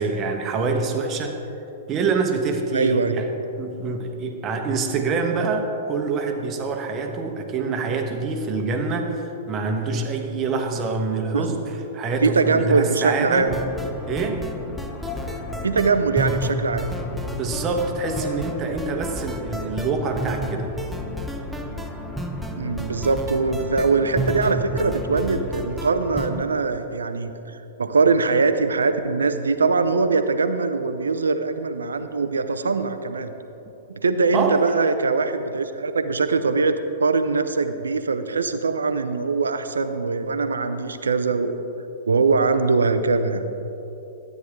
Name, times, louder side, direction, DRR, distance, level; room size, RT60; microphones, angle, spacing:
voice 1, 0.0-1.3 1.9-3.3 3.6-13.5 14.0-14.4 17.4-20.7 34.3-34.6, right 4 dB, 30° right, 4 dB, 1.2 m, -26 dB
voice 2, 2.7-3.2 11.3-11.4 12.2-13.6 15.6-16.9 22.6-33.3 33.9-36.7 37.0-41.5 42.1-43.5, right 4 dB, 80° right, 10 dB, 0.6 m, -22 dB
sound 1, 12.4-25.2, left 7 dB, 45° left, 0.8 m, -40 dB
sound 2, 13.4-26.4, equal, 5° right, 0.8 m, -31 dB
13.0 x 9.3 x 3.6 m, 3.0 s
figure-of-eight pair, 105°, 0 cm